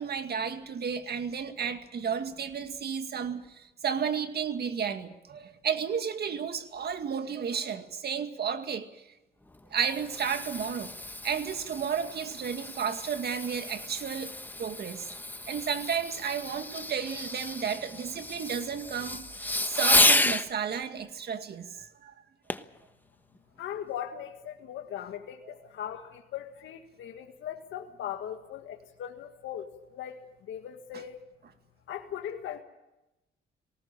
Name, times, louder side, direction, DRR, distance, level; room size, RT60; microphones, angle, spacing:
voice 1, 0.0-9.0 9.7-10.9 11.2-14.3 14.6-15.1 15.5-22.1 25.5-25.6 30.9-31.0, right 7 dB, 55° right, 2.1 m, -33 dB
Fireworks, 9.5-20.5 22.5-22.8 23.4-23.5, left 2 dB, 10° left, 1.2 m, -31 dB
voice 2, 23.6-31.2 31.9-32.6, left 10 dB, 75° left, 1.9 m, -39 dB
20.0 x 18.5 x 8.8 m
cardioid pair, 90°, 20 cm